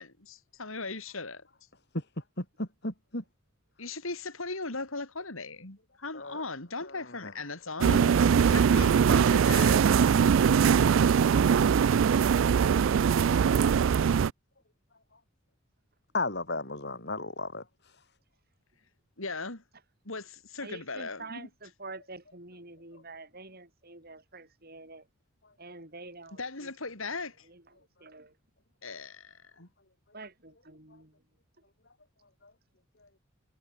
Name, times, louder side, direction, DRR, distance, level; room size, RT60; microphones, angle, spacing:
voice 1, 0.0-1.5 3.8-9.8 10.4-10.5 19.2-19.6 20.1-21.5 26.4-27.5 28.8-29.7, left 3 dB, 70° left, 3.8 m, -38 dB
voice 2, 2.4-3.2 6.1-6.4 7.2-7.3 16.1-17.6, left 2 dB, 50° left, 5.6 m, -34 dB
sound 1, 7.8-14.3, right 7 dB, 65° right, 0.3 m, -22 dB
voice 3, 20.6-25.1 25.6-26.7 27.4-28.4 30.1-31.2, right 3 dB, 45° right, 6.9 m, -47 dB
head